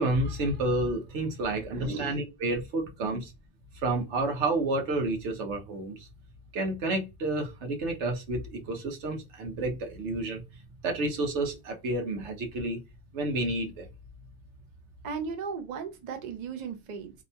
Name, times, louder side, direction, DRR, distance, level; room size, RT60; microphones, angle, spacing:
voice 1, 0.0-3.3 3.8-6.1 6.5-10.4 10.8-12.8 13.1-13.9, right 2 dB, 75° right, 1.0 m, -30 dB
voice 2, 1.7-2.1 3.0-3.1 15.0-17.1, right 5 dB, 50° right, 0.5 m, -36 dB
2.8 x 2.2 x 2.6 m
omnidirectional pair, 1.2 m